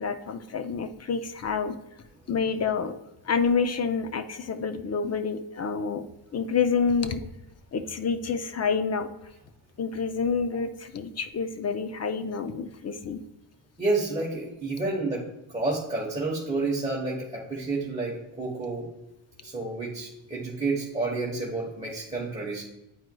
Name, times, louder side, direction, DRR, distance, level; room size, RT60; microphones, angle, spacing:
voice 1, 0.0-1.8 2.3-6.1 6.3-7.2 7.7-9.1 9.8-13.2, left 5 dB, 35° left, 9 dB, 0.4 m, -28 dB
voice 2, 13.8-18.9 19.4-22.6, right 3 dB, 15° right, -5 dB, 1.0 m, -30 dB
9.4 x 4.5 x 2.2 m, 0.91 s
wide cardioid pair, 125°, 47 cm